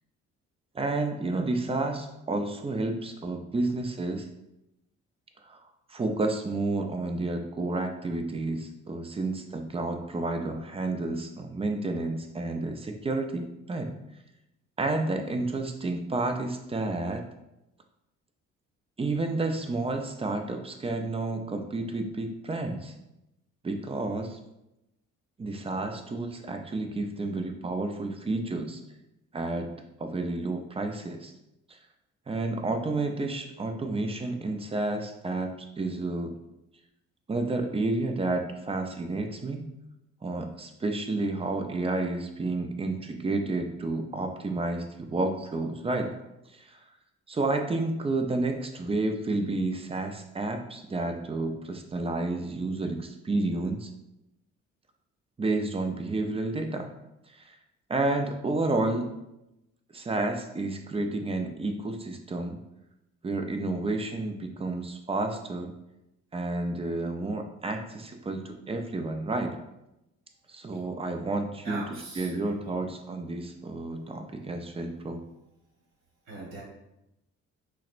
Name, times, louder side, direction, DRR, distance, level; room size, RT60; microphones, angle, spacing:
voice 1, 0.7-4.3 5.4-5.6 5.9-13.9 14.8-17.2 19.0-22.9 23.6-24.4 25.4-28.8 29.3-31.3 31.7-31.8 32.3-36.4 37.3-39.7 40.2-46.2 46.5-46.8 47.3-53.9 55.4-56.9 57.3-57.6 57.9-59.1 59.9-62.6 63.2-65.7 66.3-69.6 70.5-71.8 72.2-75.2, right 2 dB, 20° right, 5 dB, 0.4 m, -30 dB
voice 2, 71.6-72.9 76.2-76.6, right 2 dB, 65° right, -4 dB, 1.2 m, -41 dB
5.7 x 2.1 x 2.5 m, 0.89 s
cardioid pair, 90°, 30 cm